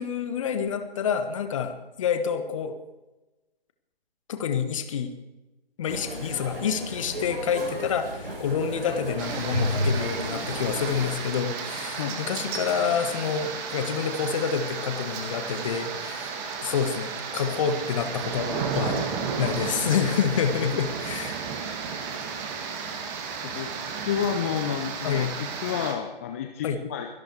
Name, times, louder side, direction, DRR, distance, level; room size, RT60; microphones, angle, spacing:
voice 1, 0.0-2.8 4.3-5.1 5.8-19.0 19.4-21.4 25.0-25.3 26.6-26.8, left 7 dB, 35° left, 8 dB, 1.6 m, -28 dB
sound 1, 5.9-11.1, equal, 65° right, 7.2 m, -32 dB
sound 2, 9.2-25.9, right 6 dB, 20° right, 1.8 m, -33 dB
voice 2, 24.0-27.1, left 8 dB, 15° left, 5 dB, 0.6 m, -30 dB
24.0 x 12.0 x 4.7 m, 1.1 s
figure-of-eight pair, 135°, 30 cm